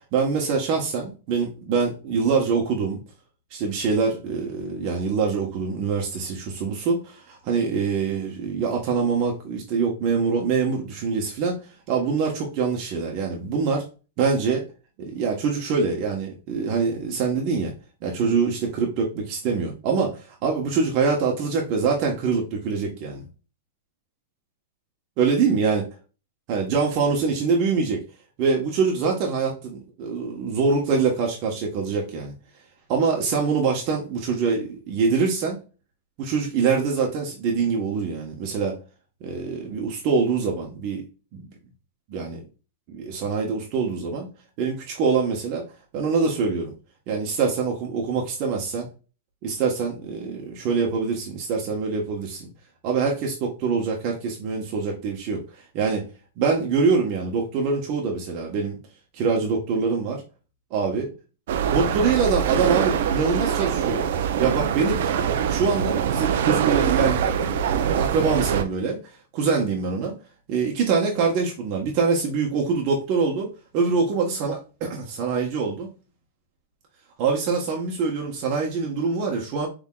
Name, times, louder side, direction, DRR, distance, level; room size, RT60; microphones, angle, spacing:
voice 1, 0.1-3.0 3.5-11.6 11.9-13.9 14.2-14.6 15.0-17.7 18.0-23.3 25.2-25.8 26.5-28.0 28.4-32.3 32.9-35.6 36.2-38.7 39.2-41.0 41.3-41.5 42.1-42.4 42.9-44.3 44.6-45.6 45.9-46.7 47.1-48.9 49.4-52.5 52.8-56.0 56.4-58.8 59.1-60.2 60.7-61.1 61.7-64.1 64.4-65.0 65.5-69.0 69.3-70.1 70.5-73.5 73.7-75.9 77.2-79.7, right 5 dB, 40° right, 0 dB, 1.2 m, -24 dB
sound 1, 61.5-68.6, right 8 dB, 65° right, 0.7 m, -23 dB
5.6 x 3.6 x 2.4 m, 0.33 s
supercardioid pair, 160°, 0 cm